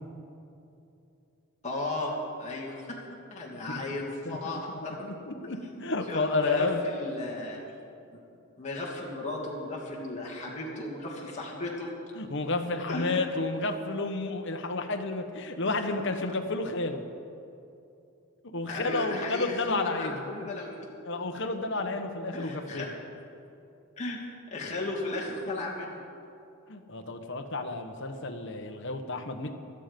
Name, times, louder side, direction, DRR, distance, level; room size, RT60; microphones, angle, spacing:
voice 1, 1.6-3.0 3.3-5.0 5.6-7.6 8.6-11.9 12.9-13.2 15.7-15.8 18.7-20.8 22.3-22.9 24.0-24.2 24.5-26.0, left 2 dB, 30° left, -4 dB, 2.8 m, -35 dB
voice 2, 5.0-6.8 12.1-17.0 18.5-20.5 21.0-22.9 26.7-29.5, left 3 dB, 55° left, 5 dB, 1.2 m, -31 dB
18.0 x 13.0 x 5.3 m, 2.7 s
head